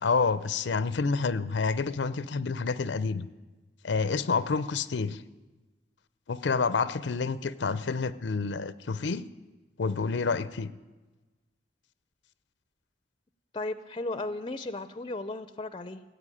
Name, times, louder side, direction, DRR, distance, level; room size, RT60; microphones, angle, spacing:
voice 1, 0.0-3.3 3.8-5.2 6.3-9.2 9.8-10.7, left 4 dB, 80° left, 16 dB, 0.6 m, -28 dB
voice 2, 13.5-16.0, left 2 dB, 25° left, 12 dB, 0.5 m, -35 dB
16.0 x 8.2 x 9.9 m, 1.2 s
head